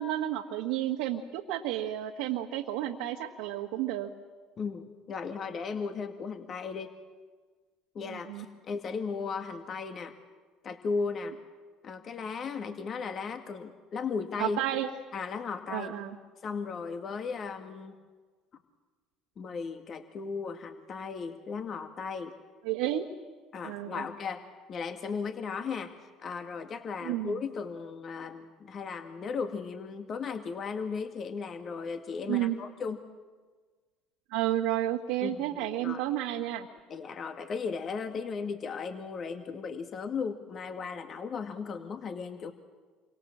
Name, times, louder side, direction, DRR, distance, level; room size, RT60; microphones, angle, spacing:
voice 1, 0.0-4.1 8.1-8.4 14.4-14.9 15.7-16.2 22.6-23.0 23.6-24.0 27.0-27.4 32.3-32.6 34.3-36.7, right 13 dB, 75° right, 2 dB, 1.6 m, -31 dB
voice 2, 4.6-6.9 7.9-10.1 10.6-11.3 11.8-14.6 15.1-15.9 16.4-17.9 19.4-22.3 23.5-24.4 24.7-25.9 26.2-33.0 35.2-36.0 36.9-42.5, left 5 dB, 45° left, 6 dB, 2.1 m, -36 dB
29.0 x 25.0 x 7.5 m, 1.4 s
hypercardioid pair, 70°, 0 cm